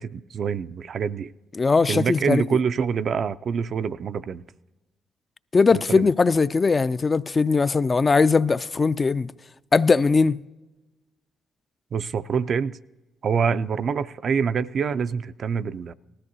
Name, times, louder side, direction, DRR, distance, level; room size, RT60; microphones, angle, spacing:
voice 1, 0.0-1.3 1.9-4.4 5.7-6.1 11.9-12.8 13.2-15.9, right 6 dB, 55° right, 0.4 m, -26 dB
voice 2, 1.6-2.6 5.5-9.3 9.7-10.4, left 4 dB, 35° left, 0.3 m, -20 dB
19.0 x 13.5 x 2.7 m
hypercardioid pair, 45°, 0 cm